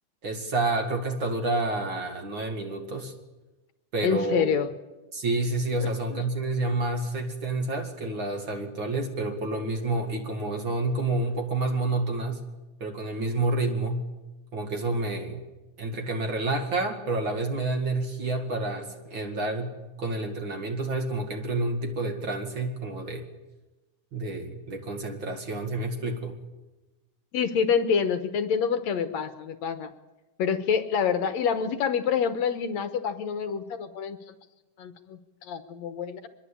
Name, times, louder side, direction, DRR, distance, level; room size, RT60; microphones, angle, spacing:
voice 1, 0.2-3.1 3.9-4.4 5.1-12.4 12.8-14.0 14.5-15.4 15.8-19.7 20.0-23.3 24.1-26.3, right 2 dB, 40° right, 4 dB, 2.6 m, -29 dB
voice 2, 4.0-4.7 5.8-6.2 27.3-29.9 30.4-34.2 34.8-36.3, left 7 dB, 70° left, 10 dB, 2.1 m, -27 dB
24.0 x 21.5 x 8.5 m, 1.1 s
omnidirectional pair, 3.5 m